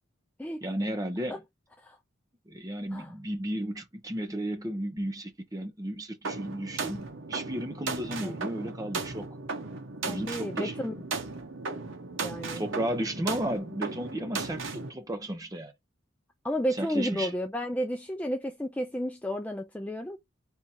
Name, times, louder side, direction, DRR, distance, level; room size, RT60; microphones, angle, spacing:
voice 1, 0.6-1.4 2.5-9.3 10.1-10.8 12.6-15.7 16.8-17.3, right 1 dB, 15° right, 0.8 m, -34 dB
sound 1, 6.2-14.9, right 4 dB, 75° right, 1.0 m, -36 dB
voice 2, 10.1-10.9 12.2-12.6 16.4-20.2, equal, 5° left, 0.3 m, -32 dB
3.6 x 2.7 x 4.4 m
head